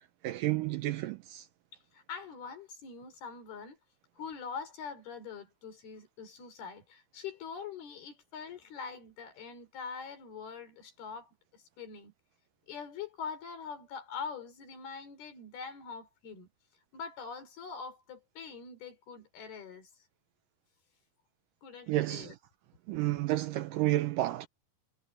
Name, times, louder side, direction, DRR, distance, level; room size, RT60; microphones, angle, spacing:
voice 1, 0.2-1.5 21.9-22.4 22.9-24.5, right 16 dB, 85° right, 1.9 m, -31 dB
voice 2, 1.9-3.8 4.2-12.1 12.7-16.5 16.9-19.9 21.6-22.3, left 6 dB, 75° left, 5.5 m, -43 dB
omnidirectional pair, 4.5 m